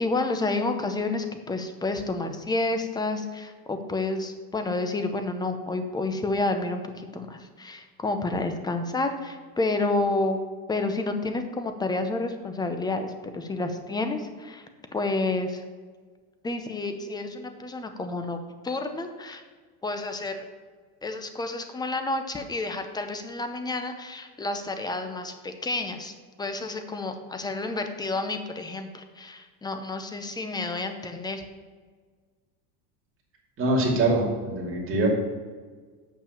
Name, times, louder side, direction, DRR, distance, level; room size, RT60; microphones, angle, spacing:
voice 1, 0.0-10.4 10.7-14.7 14.9-15.6 16.4-18.4 18.6-19.4 19.8-20.4 21.0-31.4, left 2 dB, 10° left, 7 dB, 0.6 m, -30 dB
voice 2, 33.6-35.1, right 2 dB, 25° right, -1 dB, 2.5 m, -24 dB
6.9 x 5.7 x 7.2 m, 1.5 s
supercardioid pair, 135°, 47 cm